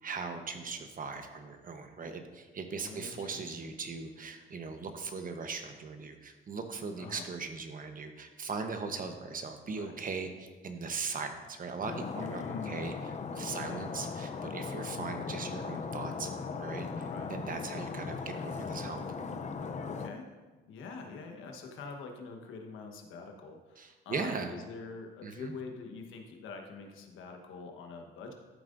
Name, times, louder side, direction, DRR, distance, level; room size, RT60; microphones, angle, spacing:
voice 1, 0.0-12.9 13.3-16.3 16.6-19.0 23.8-24.5 25.2-25.6, right 4 dB, 45° right, 6 dB, 1.0 m, -39 dB
voice 2, 2.8-3.7 7.0-7.3 9.7-10.0 12.1-13.0 13.6-13.9 17.1-17.3 19.8-20.3 20.7-28.3, left 4 dB, 85° left, 3 dB, 1.2 m, -45 dB
Stream, 11.8-20.1, left 5 dB, 35° left, 0.6 m, -38 dB
13.0 x 7.5 x 2.6 m, 1.3 s
cardioid pair, 90°, 20 cm